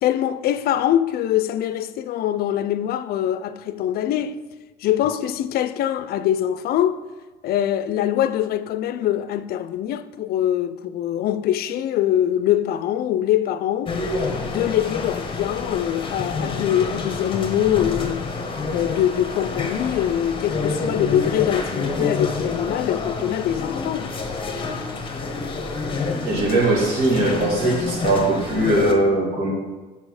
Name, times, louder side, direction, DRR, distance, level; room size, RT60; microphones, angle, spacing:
voice 1, 0.0-4.4 4.8-7.0 7.4-14.0 14.4-18.3 18.7-24.1, left 11 dB, 65° left, 0.4 m, -23 dB
sound 1, 13.9-28.9, left 3 dB, 30° left, 1.0 m, -28 dB
voice 2, 26.2-29.5, right 1 dB, 70° right, 2.5 m, -20 dB
6.2 x 5.5 x 4.8 m
cardioid pair, 110°, 17 cm